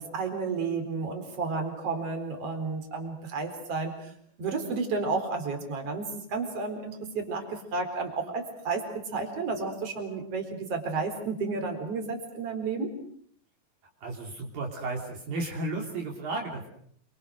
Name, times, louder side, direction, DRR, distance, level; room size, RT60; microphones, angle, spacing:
voice 1, 0.0-4.1 4.4-12.9, right 4 dB, 40° right, 5 dB, 5.1 m, -32 dB
voice 2, 14.0-16.7, right 2 dB, 65° right, 1 dB, 4.7 m, -33 dB
28.5 x 25.0 x 6.6 m, 0.64 s
omnidirectional pair, 4.5 m